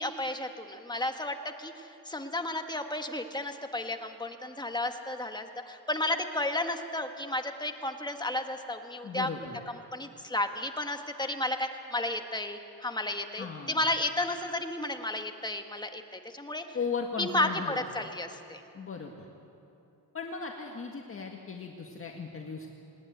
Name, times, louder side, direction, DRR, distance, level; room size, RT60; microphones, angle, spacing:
voice 1, 0.0-9.3 9.7-16.8 17.2-18.6, left 1 dB, 10° left, 5 dB, 1.4 m, -33 dB
voice 2, 9.0-9.6 13.4-13.8 16.7-17.8 18.7-19.3 20.1-22.7, left 5 dB, 30° left, 1 dB, 1.8 m, -37 dB
20.5 x 19.5 x 9.6 m, 2.7 s
cardioid pair, 140°, 41 cm